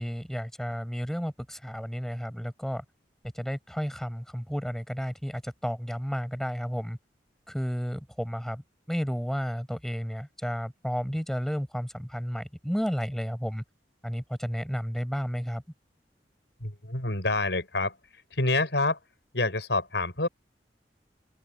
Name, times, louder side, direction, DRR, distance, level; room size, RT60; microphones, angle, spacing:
voice 1, 0.0-2.8 3.4-7.0 7.5-13.6 14.0-15.6, equal, ahead, 5.3 m, -32 dB
voice 2, 16.6-19.0 19.3-20.3, left 2 dB, 80° left, 5.8 m, -27 dB
open air
head